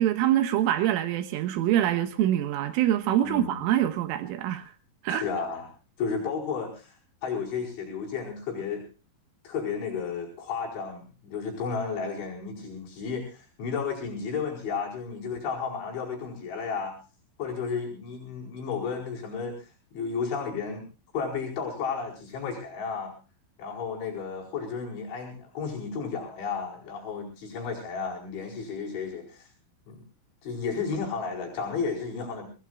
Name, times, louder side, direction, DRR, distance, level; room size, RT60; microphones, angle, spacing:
voice 1, 0.0-4.7 5.0-5.2, right 12 dB, 85° right, 3.8 m, -25 dB
voice 2, 3.2-3.6 5.2-5.7 6.0-7.0 7.2-8.8 9.5-17.0 17.4-19.6 19.9-20.9 21.1-23.1 23.6-29.5 29.9-30.0 30.4-32.5, left 5 dB, 70° left, 7.2 m, -33 dB
25.0 x 19.0 x 2.5 m
omnidirectional pair, 5.6 m